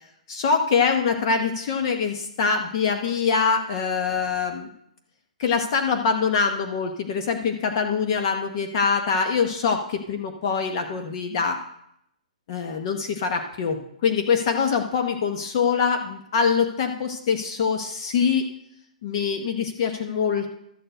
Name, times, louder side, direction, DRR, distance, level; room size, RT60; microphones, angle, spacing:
voice 1, 0.3-4.7 5.4-11.6 12.5-18.4 19.0-20.5, left 5 dB, 40° left, 5 dB, 0.8 m, -24 dB
12.5 x 4.6 x 7.8 m, 0.76 s
hypercardioid pair, 165°, 4 cm